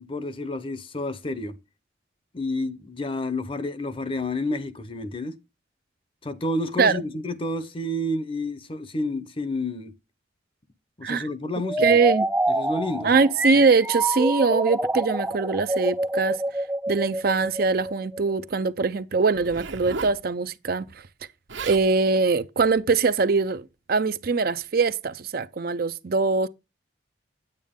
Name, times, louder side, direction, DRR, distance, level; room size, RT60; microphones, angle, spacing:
voice 1, 0.0-1.6 2.3-5.4 6.2-9.9 11.0-11.9 12.5-13.2, left 1 dB, 30° left, 0.8 m, -30 dB
sound 1, 11.6-18.3, right 1 dB, 10° right, 0.6 m, -26 dB
voice 2, 11.8-12.3 13.0-16.4 16.9-20.9 21.6-26.5, right 4 dB, 50° right, 0.5 m, -22 dB
Zipper (clothing), 19.3-20.2 21.2-21.3 21.5-21.9 22.6-22.8, right 4 dB, 80° right, 1.4 m, -35 dB
9.4 x 9.0 x 3.6 m
head